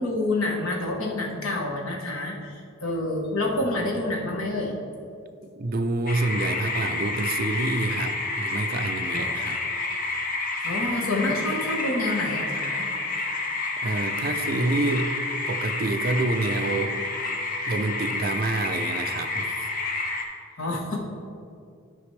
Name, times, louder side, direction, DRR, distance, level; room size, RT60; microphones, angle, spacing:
voice 1, 0.0-2.5 2.8-4.7 9.1-9.2 10.6-12.9 20.6-21.0, left 2 dB, 80° left, 0 dB, 1.2 m, -27 dB
voice 2, 5.6-9.6 13.8-15.2 15.5-17.0 17.7-19.5, right 2 dB, 45° right, 7 dB, 0.4 m, -27 dB
sound 1, 6.1-20.2, left 3 dB, 40° left, 0.8 m, -29 dB
12.0 x 5.0 x 3.3 m, 2.4 s
head